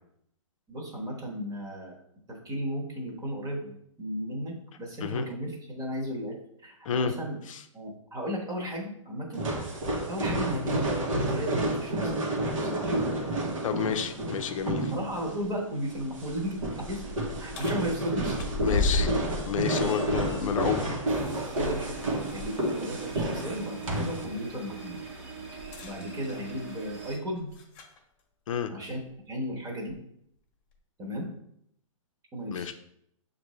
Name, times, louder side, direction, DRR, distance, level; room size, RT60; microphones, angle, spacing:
voice 1, 0.7-2.0 2.3-7.4 7.7-9.5 10.1-12.2 12.6-12.9 14.9-17.0 17.4-18.4 18.9-19.0 19.6-19.7 20.4-20.5 21.5-25.1 25.8-27.5 28.7-29.0 29.3-30.0 31.0-31.3 32.3-32.7, equal, 20° right, -1 dB, 1.2 m, -35 dB
sound 1, 9.3-24.2, right 1 dB, 75° right, 1.2 m, -30 dB
voice 2, 13.6-14.9 18.6-19.1 19.4-20.9 28.5-28.7 32.5-32.7, left 7 dB, 75° left, 7 dB, 0.5 m, -30 dB
sound 2, 16.6-22.6 23.0-23.2 25.6-28.0 29.0-29.1 29.9-30.0, left 2 dB, 40° left, 1.0 m, -35 dB
sound 3, 21.1-27.2, right 5 dB, 45° right, 1.2 m, -42 dB
6.4 x 2.6 x 3.1 m, 0.72 s
hypercardioid pair, 135°, 17 cm